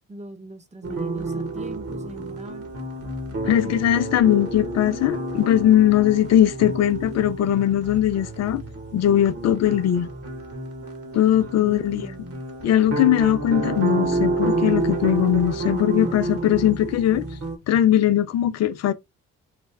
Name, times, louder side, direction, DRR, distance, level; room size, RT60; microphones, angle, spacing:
voice 1, 0.1-2.7 3.4-3.8 11.5-12.4, right 2 dB, 20° right, 1.0 m, -41 dB
sound 1, 0.8-17.6, right 2 dB, 50° right, 1.4 m, -29 dB
voice 2, 3.4-8.6 8.9-10.1 11.1-12.0 12.6-17.3 17.7-18.9, left 11 dB, 55° left, 0.5 m, -20 dB
3.3 x 2.2 x 3.3 m
hypercardioid pair, 50°, 32 cm